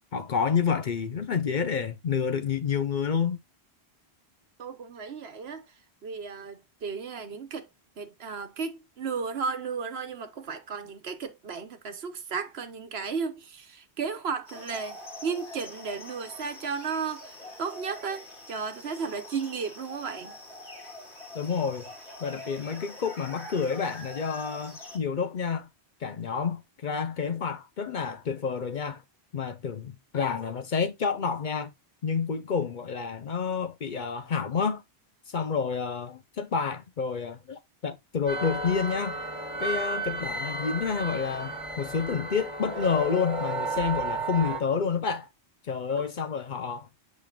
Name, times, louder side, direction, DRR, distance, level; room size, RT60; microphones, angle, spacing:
voice 1, 0.1-3.4 21.3-21.9 22.2-25.7 26.0-29.0 29.3-31.7 32.0-34.8 35.3-39.2 39.6-45.3 45.6-46.9, left 6 dB, 50° left, 0.8 m, -29 dB
voice 2, 4.6-5.7 6.0-7.7 8.0-20.3 46.0-46.1, right 5 dB, 70° right, 1.2 m, -34 dB
sound 1, 14.5-25.0, left 1 dB, 80° left, 3.3 m, -45 dB
sound 2, 38.3-44.6, right 2 dB, 30° right, 2.0 m, -33 dB
8.1 x 5.2 x 2.4 m
omnidirectional pair, 1.1 m